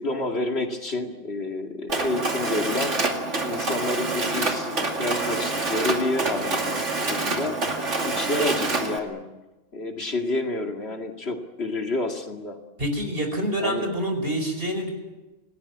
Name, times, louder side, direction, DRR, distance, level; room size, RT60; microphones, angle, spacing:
voice 1, 0.0-2.9 3.4-7.6 8.1-9.2 9.7-12.6 13.6-13.8, left 2 dB, 55° left, 3 dB, 2.6 m, -29 dB
Mechanisms, 1.9-9.0, right 3 dB, 70° right, 2.9 m, -27 dB
voice 2, 12.8-14.9, equal, 50° right, 5 dB, 5.2 m, -26 dB
27.5 x 19.0 x 8.6 m, 1.1 s
omnidirectional pair, 1.3 m